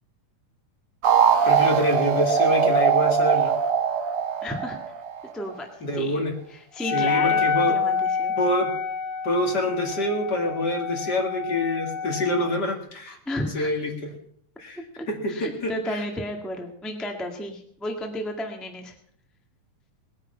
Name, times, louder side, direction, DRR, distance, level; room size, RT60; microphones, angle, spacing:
sound 1, 1.0-5.5, right 7 dB, 50° right, 1.9 m, -21 dB
voice 1, 1.4-3.5 5.8-6.4 6.9-7.8 8.4-8.7 9.2-13.2 13.4-14.1 14.6-14.8 15.1-16.0, left 1 dB, 35° left, 2 dB, 2.3 m, -26 dB
voice 2, 4.4-4.8 5.3-6.2 6.5-8.3 13.2-13.9 14.8-18.9, left 1 dB, ahead, 2 dB, 0.8 m, -33 dB
Wind instrument woodwind instrument, 6.8-12.6, left 5 dB, 80° left, 2.7 m, -27 dB
19.5 x 9.8 x 5.7 m, 0.64 s
omnidirectional pair, 3.6 m